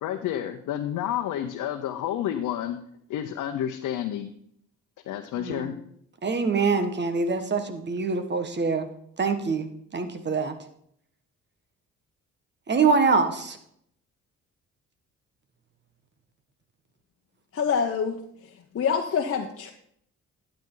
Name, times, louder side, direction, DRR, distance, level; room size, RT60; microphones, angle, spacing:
voice 1, 0.0-2.8 3.1-4.3 5.0-5.8, left 10 dB, 80° left, 4 dB, 0.9 m, -30 dB
voice 2, 5.4-5.7 6.2-8.9 9.2-10.5 12.7-13.6, right 4 dB, 35° right, 8 dB, 1.5 m, -25 dB
voice 3, 17.5-18.2 18.7-19.7, left 6 dB, 50° left, 1 dB, 1.0 m, -25 dB
12.0 x 8.9 x 3.9 m, 0.69 s
cardioid pair, 90°, 30 cm